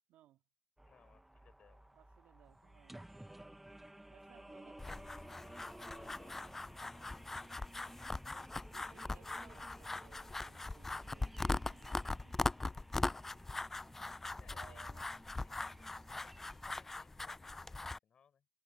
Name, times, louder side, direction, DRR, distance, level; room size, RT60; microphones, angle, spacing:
voice 1, 0.1-0.4 1.9-3.0 4.1-5.9 8.5-12.4 14.4-15.1, right 13 dB, 55° right, 2.5 m, -65 dB
voice 2, 0.8-1.9 4.3-4.6 5.8-7.7 12.7-12.9 14.4-15.1 15.4-18.5, left 7 dB, 35° left, 5.5 m, -68 dB
sound 1, 0.8-16.8, right 1 dB, 5° right, 1.2 m, -56 dB
sound 2, 4.8-18.0, left 2 dB, 10° left, 0.4 m, -41 dB
supercardioid pair, 110°, 3 cm